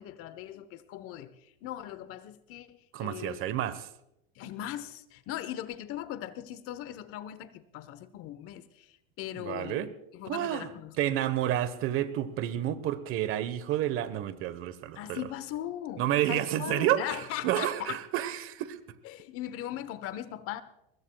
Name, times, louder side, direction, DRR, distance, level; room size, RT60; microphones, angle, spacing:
voice 1, 0.0-3.4 4.3-9.9 10.1-11.1 14.9-18.0 19.0-20.6, left 12 dB, 50° left, 1.1 m, -39 dB
voice 2, 2.9-3.9 9.3-9.9 10.3-10.7 11.0-15.2 16.0-18.8, right 12 dB, 45° right, 1.2 m, -30 dB
23.0 x 20.5 x 2.3 m
supercardioid pair, 125°, 30 cm